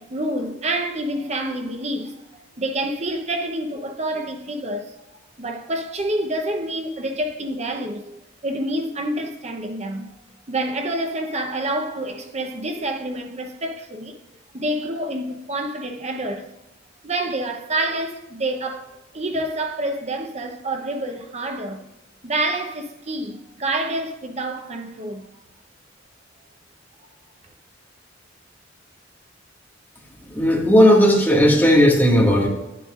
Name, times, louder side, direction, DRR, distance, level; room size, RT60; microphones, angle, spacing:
voice 1, 0.0-2.2 2.6-4.9 5.4-10.1 10.5-14.2 14.5-16.5 17.0-21.8 22.2-25.3, right 1 dB, 35° right, 0.9 m, -27 dB
voice 2, 30.3-32.5, equal, 10° left, 1.9 m, -15 dB
11.0 x 8.9 x 2.5 m
head